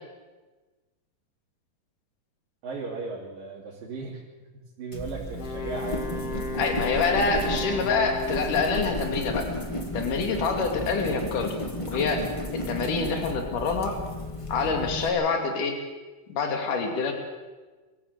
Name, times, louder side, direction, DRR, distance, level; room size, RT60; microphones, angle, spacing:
voice 1, 2.6-4.2 4.5-6.1, right 4 dB, 75° right, -5 dB, 4.5 m, -36 dB
sound 1, 4.9-15.1, left 1 dB, 25° left, 0.7 m, -33 dB
Wind instrument woodwind instrument, 5.3-9.1, equal, 45° left, 2.8 m, -35 dB
voice 2, 6.5-9.5 9.9-11.5 11.9-12.2 12.7-13.9 14.5-15.8 16.3-17.1, left 4 dB, 65° left, 4 dB, 4.0 m, -26 dB
23.5 x 14.0 x 8.0 m, 1.3 s
omnidirectional pair, 4.0 m